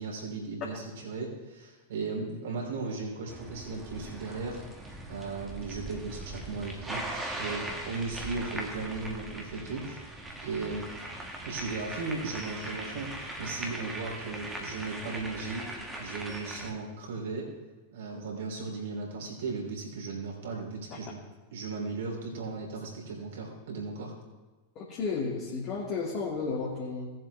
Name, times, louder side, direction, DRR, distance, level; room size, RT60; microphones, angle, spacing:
voice 1, 0.0-4.6 5.1-10.0 10.4-10.9 11.4-15.7 16.0-17.5 17.9-21.2 21.5-24.1, right 3 dB, 60° right, -1 dB, 3.3 m, -36 dB
sound 1, 3.3-16.7, right 1 dB, 10° right, 1.7 m, -40 dB
voice 2, 24.8-27.1, left 4 dB, 40° left, -4 dB, 2.0 m, -33 dB
17.5 x 7.6 x 3.4 m, 1.2 s
figure-of-eight pair, 90°, 0 cm